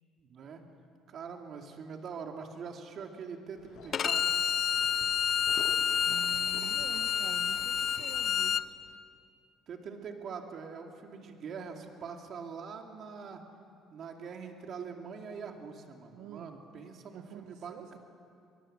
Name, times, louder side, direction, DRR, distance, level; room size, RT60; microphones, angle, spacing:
voice 1, 0.2-0.6 1.1-4.5 9.7-13.4 13.9-18.0, right 6 dB, 45° right, 3 dB, 2.4 m, -43 dB
sound 1, 3.5-8.4, left 4 dB, 65° left, 6.5 m, -51 dB
Bowed string instrument, 3.9-8.6, left 8 dB, 40° left, 0.6 m, -29 dB
voice 2, 6.1-8.7 16.1-16.5 17.1-18.0, right 9 dB, 85° right, 5 dB, 1.3 m, -47 dB
23.0 x 21.5 x 7.6 m, 2.5 s
cardioid pair, 145°, 0 cm